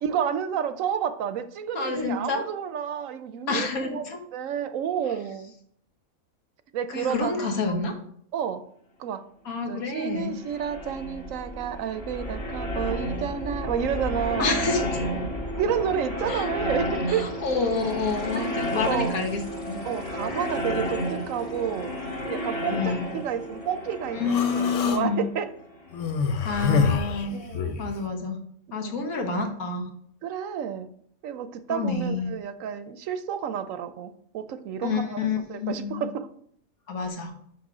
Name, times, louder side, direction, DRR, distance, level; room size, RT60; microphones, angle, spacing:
voice 1, 0.0-4.0 4.3-5.5 6.7-7.5 8.3-8.6 9.0-9.2 9.7-14.6 15.6-17.3 18.3-18.4 18.8-19.2 19.8-22.0 22.3-25.5 27.3-27.8 28.7-29.1 30.2-30.9 31.2-35.2 35.5-36.3, right 8 dB, 70° right, 11 dB, 1.0 m, -30 dB
voice 2, 1.7-2.4 3.5-4.2 6.9-7.9 9.4-10.4 14.4-15.1 16.3-16.5 17.1-19.4 19.7-19.8 22.7-23.0 24.1-25.3 26.4-27.4 27.8-28.4 28.7-29.9 31.7-32.3 34.8-36.1 36.9-37.3, left 4 dB, 80° left, 4 dB, 1.7 m, -28 dB
sound 1, 10.1-26.8, equal, 25° left, 1.6 m, -32 dB
Human voice, 24.3-25.0 25.9-27.9, left 5 dB, 60° left, 1.1 m, -26 dB
6.1 x 5.9 x 4.8 m, 0.65 s
omnidirectional pair, 1.5 m